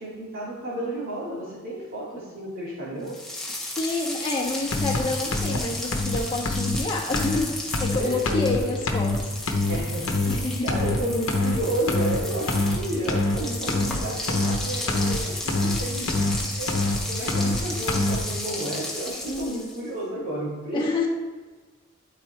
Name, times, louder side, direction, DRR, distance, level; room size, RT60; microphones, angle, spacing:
voice 1, 0.0-3.2 8.0-8.8 9.7-10.3 10.6-16.3 16.6-16.7 17.1-21.1, right 1 dB, 45° right, -9 dB, 2.4 m, -31 dB
sound 1, 3.1-19.9, left 1 dB, ahead, 1.1 m, -34 dB
voice 2, 3.8-7.5 7.8-9.1 10.3-10.8 19.2-19.6 20.7-21.1, left 3 dB, 25° left, -2 dB, 1.2 m, -28 dB
sound 2, 4.7-5.0 5.3-5.6 5.9-6.2 6.4-6.8 7.1-7.4 7.7-8.0 8.2-8.6 8.8-9.2 9.5-9.8 10.1-10.4 10.7-11.0 11.3-11.6 11.9-12.2 12.5-12.8 13.1-13.4 13.7-14.0 14.3-14.6 14.9-15.2 15.5-15.8 16.1-16.4 16.7-17.0 17.3-17.6 17.9-18.2, left 2 dB, 85° left, 0.9 m, -24 dB
12.0 x 4.1 x 3.3 m, 1.3 s
head